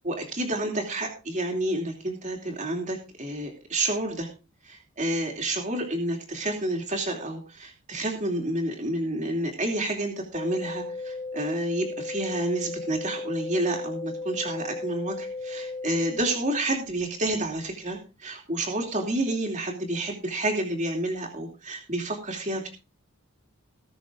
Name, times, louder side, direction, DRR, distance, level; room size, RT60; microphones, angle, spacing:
voice 1, 0.0-4.3 4.6-22.7, right 1 dB, 35° right, 1 dB, 2.8 m, -29 dB
sound 1, 10.3-16.3, left 3 dB, 25° left, 0.8 m, -35 dB
19.0 x 6.8 x 3.7 m, 0.31 s
head